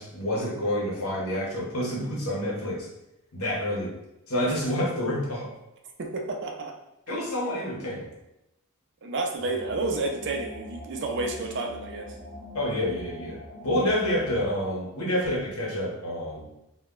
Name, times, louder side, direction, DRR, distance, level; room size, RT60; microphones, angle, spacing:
voice 1, 0.0-2.9 3.3-3.9 4.3-5.5 7.1-8.0 12.5-13.4 13.6-16.5, left 1 dB, 80° left, -3 dB, 0.8 m, -28 dB
voice 2, 6.0-6.7 7.1-7.2 9.0-12.1, right 3 dB, 55° right, 2 dB, 0.4 m, -30 dB
sound 1, 9.4-14.6, left 1 dB, 5° left, 0.9 m, -42 dB
2.1 x 2.1 x 3.5 m, 0.89 s
head